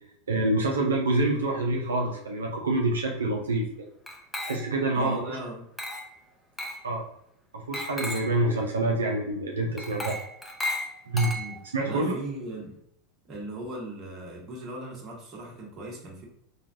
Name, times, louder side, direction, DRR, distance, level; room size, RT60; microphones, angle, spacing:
voice 1, 0.3-3.9 4.4-5.4 6.8-7.0 7.5-10.2 11.1-11.3 11.7-12.1, right 2 dB, 85° right, 0 dB, 0.4 m, -26 dB
Glass, 4.1-4.9 5.8-6.2 6.6-6.9 7.7-8.4 9.8-11.8, left 1 dB, 10° left, 0.5 m, -35 dB
voice 2, 4.9-5.6 11.3-11.6 11.8-12.8 13.3-16.2, right 1 dB, 35° right, -3 dB, 1.2 m, -38 dB
3.1 x 2.3 x 2.6 m, 0.71 s
hypercardioid pair, 90°, 0 cm